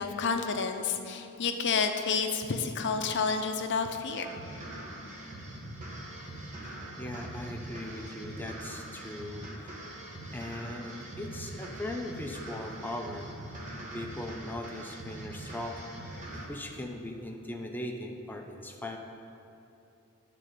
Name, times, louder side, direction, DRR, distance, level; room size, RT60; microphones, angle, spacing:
voice 1, 0.0-4.3, left 5 dB, 55° left, 6 dB, 0.6 m, -30 dB
sound 1, 4.2-16.5, right 1 dB, 35° right, 1.1 m, -42 dB
voice 2, 7.0-9.7 10.3-13.3 13.9-15.8 16.3-19.0, left 1 dB, 10° left, 3 dB, 0.4 m, -39 dB
10.0 x 3.7 x 6.5 m, 2.9 s
head